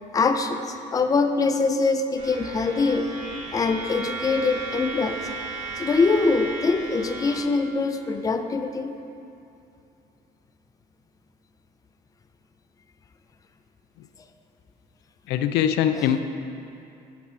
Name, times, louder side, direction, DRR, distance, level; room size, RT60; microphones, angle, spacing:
voice 1, 0.1-3.1 3.5-5.2 5.8-8.9 16.0-16.1, left 4 dB, 20° left, 7 dB, 0.4 m, -23 dB
sound 1, 2.2-7.4, right 3 dB, 45° right, 1.7 m, -35 dB
voice 2, 15.3-16.2, left 10 dB, 85° left, 8 dB, 0.4 m, -22 dB
8.2 x 4.7 x 5.6 m, 2.6 s
cardioid pair, 110°, 17 cm